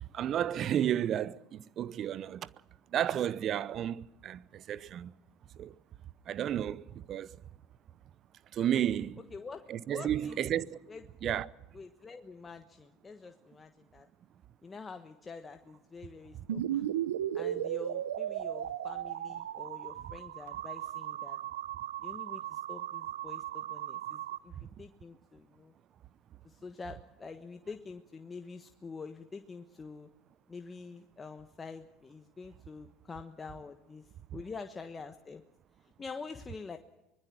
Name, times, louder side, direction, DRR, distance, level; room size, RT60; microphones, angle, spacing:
voice 1, 0.1-2.5 2.9-5.1 5.6-5.7 6.3-7.4 8.5-9.2 9.7-10.8 11.2-11.5, right 10 dB, 50° right, 0.7 m, -32 dB
voice 2, 9.3-11.4 11.7-14.1 14.6-17.0 17.3-21.4 22.0-25.7 26.4-30.1 30.5-35.4 36.0-36.8, left 4 dB, 25° left, 1.3 m, -46 dB
sound 1, 16.5-24.4, right 11 dB, 85° right, 0.8 m, -36 dB
24.5 x 20.5 x 6.1 m
hypercardioid pair, 75°, 0 cm